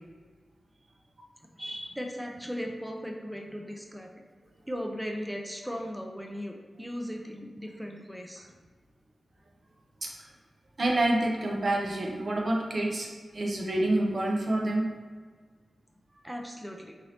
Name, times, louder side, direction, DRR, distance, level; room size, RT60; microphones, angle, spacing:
voice 1, 1.6-4.1 4.7-8.5 16.2-16.9, equal, ahead, 1 dB, 0.4 m, -37 dB
voice 2, 10.8-14.9, right 1 dB, 55° right, 0 dB, 0.6 m, -27 dB
2.8 x 2.6 x 3.2 m, 1.5 s
cardioid pair, 45°, 0 cm